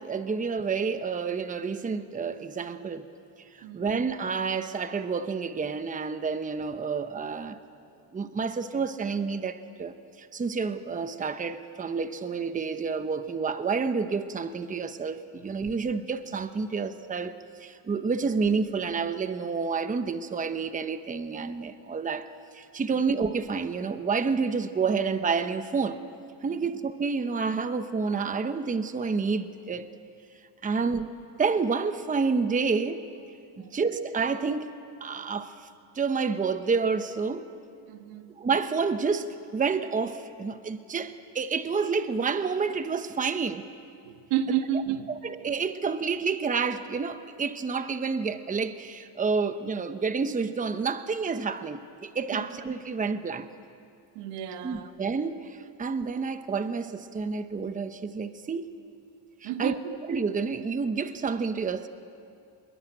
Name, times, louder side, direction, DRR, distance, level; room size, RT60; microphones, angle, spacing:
voice 1, 0.0-3.1 3.5-7.6 8.1-17.3 17.6-22.3 22.5-26.0 26.4-29.9 30.6-31.1 31.4-33.1 33.6-34.7 35.0-35.7 35.9-37.5 38.3-43.7 44.5-44.6 45.1-53.5 54.6-58.7 59.4-59.8 60.1-61.9, right 5 dB, 15° right, 0.9 m, -29 dB
voice 2, 3.6-4.0 26.5-26.6 30.6-30.9 33.5-33.8 37.9-38.3 44.0-45.1 52.3-52.5 54.1-54.9 59.4-60.0, right 10 dB, 85° right, 1.7 m, -32 dB
29.0 x 21.5 x 9.0 m
cardioid pair, 140°, 49 cm